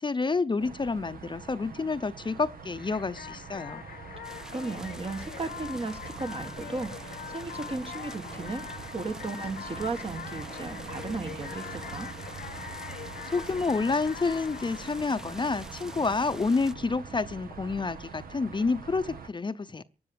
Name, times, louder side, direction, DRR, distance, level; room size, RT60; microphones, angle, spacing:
voice 1, 0.0-3.8 13.2-19.8, left 4 dB, 30° left, 0.7 m, -29 dB
sound 1, 0.6-19.3, right 5 dB, 75° right, 1.4 m, -44 dB
sound 2, 2.8-16.2, left 9 dB, 75° left, 0.7 m, -44 dB
sound 3, 4.2-16.7, equal, 5° right, 0.7 m, -48 dB
voice 2, 4.2-12.1, right 3 dB, 40° right, 1.5 m, -36 dB
16.0 x 9.8 x 7.0 m
cardioid pair, 65°, 15 cm